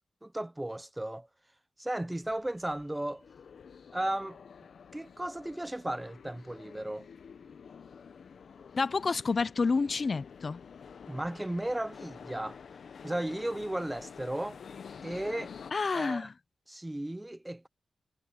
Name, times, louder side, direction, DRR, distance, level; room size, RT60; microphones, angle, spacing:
voice 1, 0.2-1.3 1.8-3.2 3.9-4.4 4.9-7.1 11.1-12.6 13.0-14.6 15.0-15.5 15.9-16.3 16.7-17.7, right 1 dB, 10° right, 1.0 m, -35 dB
sound 1, 2.2-15.7, left 6 dB, 70° left, 1.1 m, -49 dB
voice 2, 8.8-10.6 15.7-16.3, left 4 dB, 45° left, 0.6 m, -29 dB
cardioid pair, 75°, 0 cm